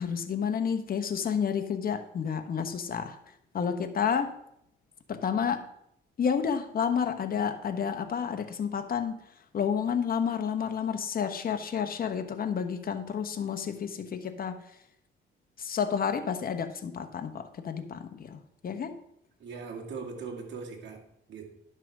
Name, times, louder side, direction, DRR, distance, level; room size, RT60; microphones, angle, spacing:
voice 1, 0.0-3.2 3.5-4.3 5.1-5.7 6.2-9.2 9.5-14.6 15.6-18.4 18.6-19.0, left 7 dB, 50° left, 1.1 m, -30 dB
voice 2, 19.4-21.5, right 5 dB, 65° right, 2.4 m, -40 dB
11.0 x 5.9 x 4.8 m
cardioid pair, 90°, 20 cm